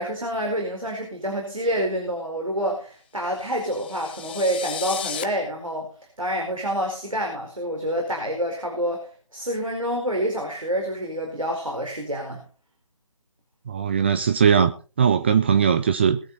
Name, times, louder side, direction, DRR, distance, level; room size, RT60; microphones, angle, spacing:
voice 1, 0.0-5.9 6.2-12.4, equal, 90° right, 2 dB, 4.7 m, -27 dB
sound 1, 3.3-5.2, left 8 dB, 20° left, 0.8 m, -34 dB
voice 2, 13.7-14.7 15.0-16.2, right 7 dB, 20° right, 9 dB, 0.5 m, -19 dB
21.5 x 8.9 x 4.1 m, 0.36 s
figure-of-eight pair, 150°, 17 cm